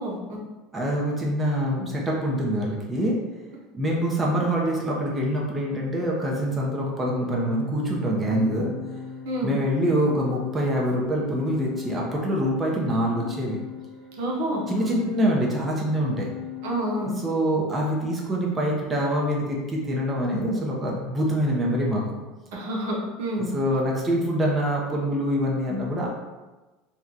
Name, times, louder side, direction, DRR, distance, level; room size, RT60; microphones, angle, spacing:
voice 1, 0.7-3.2 3.7-8.7 9.4-13.6 14.7-16.3 17.2-22.2 23.4-26.1, equal, 20° right, -3 dB, 0.7 m, -25 dB
Organ, 6.8-17.5, left 3 dB, 60° left, 1.0 m, -38 dB
voice 2, 14.2-15.0 16.6-17.2 22.5-23.5, equal, 75° right, -2 dB, 0.8 m, -28 dB
2.8 x 2.3 x 3.7 m, 1.2 s
supercardioid pair, 125°, 0 cm